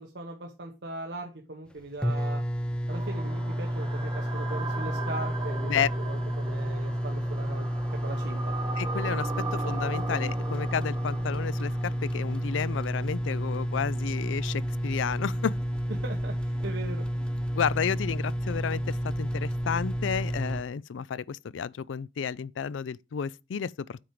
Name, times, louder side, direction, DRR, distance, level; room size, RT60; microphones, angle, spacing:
voice 1, 0.0-2.4 2.9-7.7 8.0-8.5 16.0-17.1, right 2 dB, 65° right, 1.2 m, -39 dB
sound 1, 1.7-1.8 2.0-20.6, equal, 5° left, 0.5 m, -31 dB
sound 2, 2.9-13.0, right 3 dB, 20° right, 1.2 m, -39 dB
voice 2, 8.8-15.6 17.5-24.0, left 7 dB, 85° left, 0.4 m, -31 dB
8.7 x 4.5 x 5.0 m
head